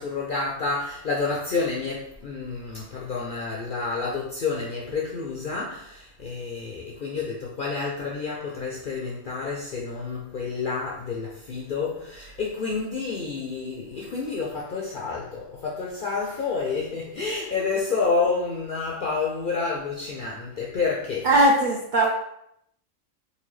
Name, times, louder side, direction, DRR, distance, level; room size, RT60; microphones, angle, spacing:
voice 1, 0.0-21.3, left 4 dB, 65° left, -3 dB, 0.5 m, -29 dB
voice 2, 21.2-22.1, right 1 dB, 75° right, -1 dB, 0.4 m, -19 dB
4.0 x 2.3 x 3.1 m, 0.75 s
omnidirectional pair, 1.4 m